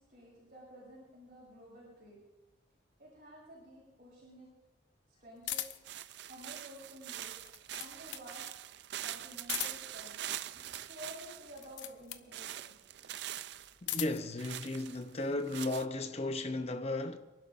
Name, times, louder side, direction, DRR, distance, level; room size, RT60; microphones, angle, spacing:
voice 1, 0.1-2.2 3.0-4.5 5.2-5.6 6.3-8.5 9.0-10.2 10.5-12.7, equal, 45° right, 6.1 m, -52 dB
sound 1, 5.4-6.0 7.3-8.3 9.4-10.0 11.5-12.3 13.5-14.3, left 12 dB, 75° left, 0.7 m, -39 dB
sound 2, 5.8-11.7 12.3-13.7 14.4-15.9, right 12 dB, 60° right, 0.4 m, -43 dB
voice 2, 13.8-17.2, left 2 dB, 35° left, 0.7 m, -35 dB
28.0 x 11.5 x 2.5 m
head